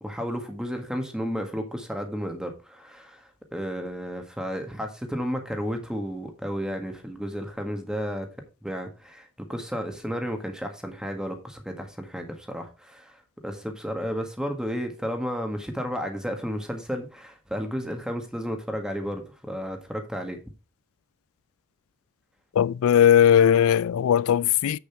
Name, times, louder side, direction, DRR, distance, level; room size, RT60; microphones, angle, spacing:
voice 1, 0.0-3.2 3.5-8.3 8.6-13.1 13.4-20.4, equal, 5° right, 1.6 m, -32 dB
voice 2, 22.5-24.8, left 9 dB, 65° left, 0.3 m, -18 dB
8.1 x 6.9 x 4.4 m
head